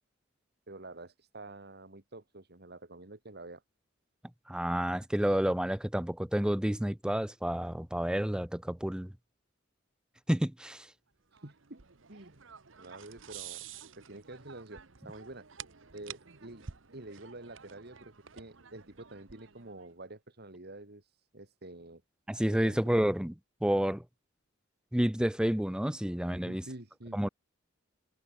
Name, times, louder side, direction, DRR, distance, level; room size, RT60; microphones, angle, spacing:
voice 1, 0.7-3.6 11.3-11.8 12.1-12.4 12.8-13.7 14.0-15.5 15.9-22.0 22.5-23.1 26.5-27.2, right 2 dB, 55° right, 2.4 m, -48 dB
voice 2, 4.5-9.1 10.3-10.9 22.3-23.3 23.6-24.0 24.9-26.6 27.1-27.3, equal, 5° right, 0.5 m, -30 dB
sound 1, 11.3-19.9, right 8 dB, 75° right, 1.3 m, -50 dB
head